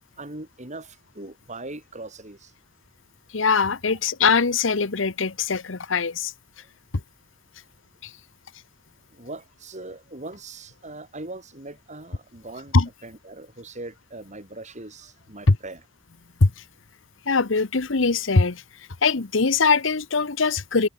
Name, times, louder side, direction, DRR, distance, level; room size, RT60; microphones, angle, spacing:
voice 1, 0.2-2.5 3.9-4.0 9.1-12.8 13.0-15.8, right 2 dB, 35° right, 4.6 m, -40 dB
voice 2, 3.3-6.3 8.0-8.1 12.7-12.9 15.5-15.6 16.4-16.5 17.3-18.6 19.0-20.9, left 4 dB, 70° left, 1.1 m, -21 dB
head